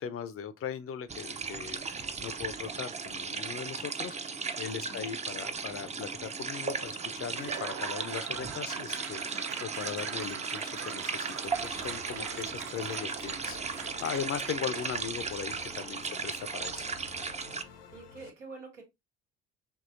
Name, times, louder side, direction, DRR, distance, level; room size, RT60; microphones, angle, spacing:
voice 1, 0.0-16.9, left 8 dB, 40° left, 0.5 m, -39 dB
sound 1, 1.1-17.6, right 5 dB, 20° right, 0.5 m, -36 dB
Laughter / Applause / Crowd, 7.3-15.1, right 7 dB, 50° right, 0.8 m, -42 dB
sound 2, 11.4-18.3, left 6 dB, 70° left, 0.8 m, -51 dB
voice 2, 17.6-18.8, right 3 dB, 90° right, 1.2 m, -48 dB
4.5 x 3.0 x 2.5 m
hypercardioid pair, 50°, 36 cm